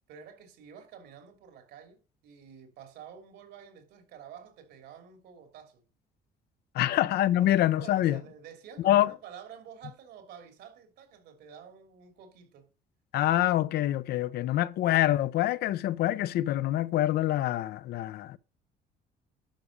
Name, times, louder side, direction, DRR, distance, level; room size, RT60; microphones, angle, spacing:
voice 1, 0.1-5.9 6.8-12.7, right 8 dB, 80° right, 3.1 m, -50 dB
voice 2, 6.7-8.2 8.8-9.1 13.1-18.4, left 13 dB, 70° left, 0.7 m, -25 dB
11.5 x 5.0 x 6.6 m
cardioid pair, 110°, 17 cm